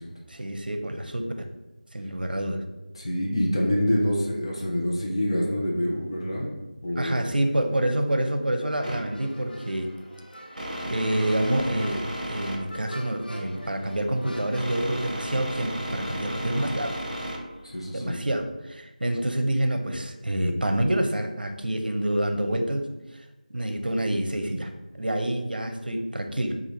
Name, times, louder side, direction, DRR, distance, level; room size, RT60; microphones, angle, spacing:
voice 1, 0.3-1.3 1.9-2.6 7.0-9.9 10.9-17.0 17.9-22.9 23.5-26.6, right 1 dB, 80° right, 5 dB, 0.7 m, -27 dB
voice 2, 2.9-6.5 6.8-7.2 17.7-18.3, equal, 35° left, -3 dB, 0.7 m, -26 dB
sound 1, 8.7-14.9, equal, 85° left, 0.7 m, -44 dB
sound 2, 8.8-18.1, equal, 50° right, 1.1 m, -35 dB
4.9 x 2.5 x 4.1 m, 1.0 s
figure-of-eight pair, 175°, 5 cm